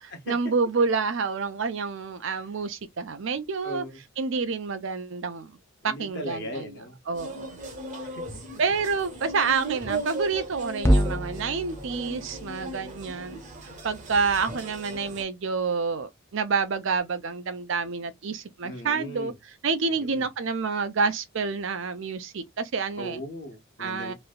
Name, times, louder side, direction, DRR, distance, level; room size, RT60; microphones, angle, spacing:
voice 1, 0.3-3.8 4.2-5.6 5.8-6.7 7.1-7.6 8.6-13.4 13.8-19.3 19.6-23.2 23.8-24.1, right 5 dB, 55° right, 0.5 m, -28 dB
voice 2, 3.6-4.0 5.8-7.0 8.0-8.6 13.3-13.4 18.6-19.3 19.9-20.3 23.0-24.1, left 1 dB, 50° left, 1.1 m, -38 dB
sound 1, 7.1-15.2, right 2 dB, 35° right, 0.8 m, -38 dB
sound 2, 10.8-15.2, equal, 10° left, 0.5 m, -29 dB
3.1 x 2.6 x 2.3 m
head